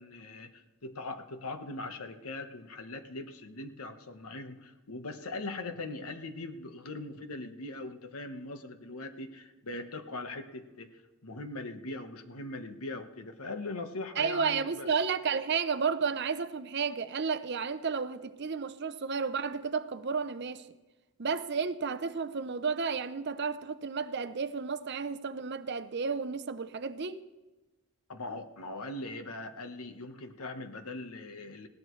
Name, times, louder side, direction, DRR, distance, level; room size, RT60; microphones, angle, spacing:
voice 1, 0.0-10.9 11.2-14.9 28.1-31.7, left 2 dB, 75° left, 1.2 m, -41 dB
voice 2, 14.2-20.7 21.2-27.2, right 5 dB, 50° right, 0.6 m, -32 dB
20.0 x 17.5 x 3.2 m
head